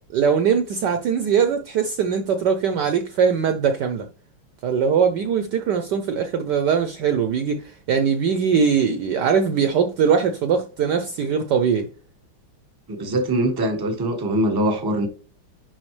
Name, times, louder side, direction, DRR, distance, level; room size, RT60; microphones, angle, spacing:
voice 1, 0.1-4.1 4.6-11.9, right 6 dB, 70° right, 1.1 m, -21 dB
voice 2, 12.9-15.1, right 1 dB, 15° right, 0.9 m, -22 dB
10.5 x 3.8 x 3.2 m
omnidirectional pair, 2.4 m